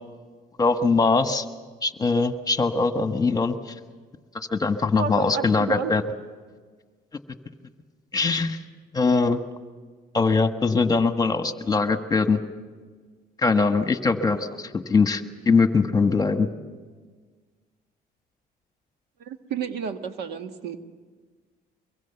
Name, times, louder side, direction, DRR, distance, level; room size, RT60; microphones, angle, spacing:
voice 1, 0.6-1.4 1.8-3.7 4.3-6.0 8.1-8.6 8.9-9.4 10.1-12.4 13.4-16.5, left 4 dB, 20° left, 8 dB, 1.5 m, -22 dB
voice 2, 5.0-5.9 19.2-20.8, right 7 dB, 80° right, 7 dB, 1.7 m, -31 dB
24.5 x 22.5 x 7.1 m, 1.5 s
cardioid pair, 110°, 17 cm